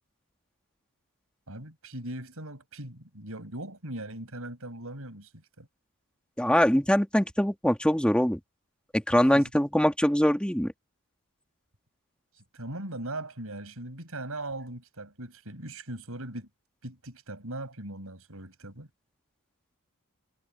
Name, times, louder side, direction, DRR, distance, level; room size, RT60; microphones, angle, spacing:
voice 1, 1.5-5.3 5.6-5.7 9.1-9.5 12.5-16.5 16.8-18.9, right 1 dB, 70° right, 7.8 m, -39 dB
voice 2, 6.4-8.4 8.9-10.7, equal, 5° left, 2.2 m, -23 dB
head